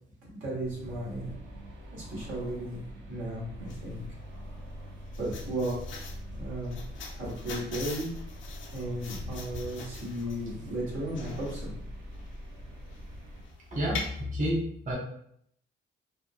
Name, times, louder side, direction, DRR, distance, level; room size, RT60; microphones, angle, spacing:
voice 1, 0.2-1.3 1.9-2.8 3.1-4.0 5.2-5.8 6.3-6.8 7.1-8.1 8.7-11.7, right 1 dB, 85° right, -6 dB, 1.3 m, -35 dB
sound 1, 0.6-13.5, equal, 65° right, 0.7 m, -43 dB
sound 2, 3.7-14.2, left 4 dB, 80° left, 0.6 m, -44 dB
voice 2, 13.7-15.0, equal, 40° right, -3 dB, 1.1 m, -30 dB
3.6 x 2.2 x 2.2 m, 0.69 s
cardioid pair, 90°, 20 cm